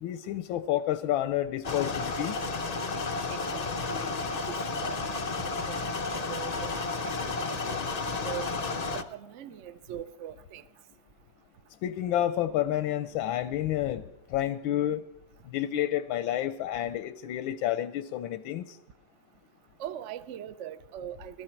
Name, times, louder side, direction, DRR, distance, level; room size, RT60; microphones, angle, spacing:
voice 1, 0.0-2.4 11.8-15.0 15.5-18.8, left 12 dB, 90° left, 1.5 m, -30 dB
sound 1, 1.6-9.0, left 4 dB, 75° left, 0.3 m, -32 dB
voice 2, 3.3-4.1 4.5-5.1 5.4-5.8 6.1-8.5 9.1-10.6 19.8-21.4, right 10 dB, 75° right, 0.6 m, -42 dB
18.5 x 13.0 x 4.5 m
omnidirectional pair, 2.1 m